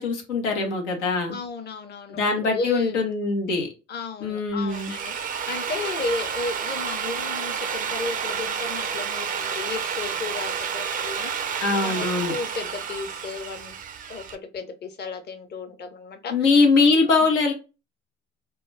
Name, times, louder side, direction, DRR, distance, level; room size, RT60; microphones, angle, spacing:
voice 1, 0.0-1.4 2.1-3.7 4.2-4.9 11.6-12.3 16.3-17.5, left 4 dB, 85° left, 2 dB, 0.7 m, -22 dB
voice 2, 1.3-3.0 3.9-13.8 14.1-16.5 17.0-17.1, left 3 dB, 30° left, 6 dB, 0.6 m, -34 dB
Drill, 4.5-14.4, right 7 dB, 25° right, 0.3 m, -30 dB
2.2 x 2.1 x 3.2 m, 0.30 s
hypercardioid pair, 55°, 35 cm